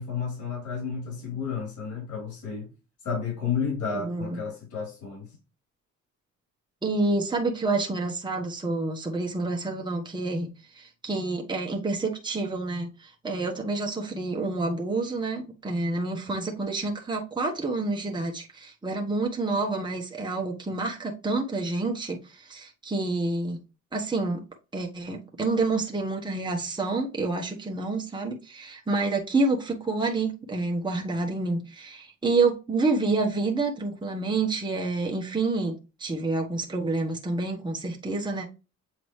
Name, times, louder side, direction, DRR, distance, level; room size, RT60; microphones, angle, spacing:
voice 1, 0.0-2.7 3.0-5.3 16.3-16.4, left 6 dB, 70° left, 3.7 m, -32 dB
voice 2, 3.9-4.4 6.8-10.5 10.8-23.6 23.9-24.4 24.7-38.5, right 3 dB, 15° right, 1.3 m, -28 dB
7.8 x 3.8 x 3.2 m
cardioid pair, 90°, 30 cm